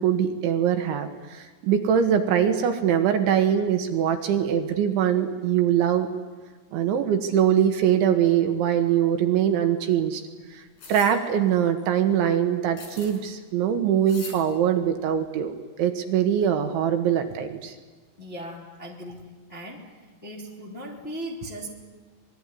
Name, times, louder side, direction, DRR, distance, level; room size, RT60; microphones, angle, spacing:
voice 1, 0.0-6.1 6.7-10.2 10.5-10.6 10.9-17.7, right 9 dB, 70° right, 6 dB, 3.6 m, -23 dB
sound 1, 10.8-11.1 12.8-13.2 14.1-14.4, left 3 dB, 50° left, 7.2 m, -41 dB
voice 2, 18.2-19.2 19.5-19.9 20.2-21.7, equal, 15° left, -2 dB, 2.2 m, -37 dB
25.5 x 21.5 x 10.0 m, 1.3 s
omnidirectional pair, 6.0 m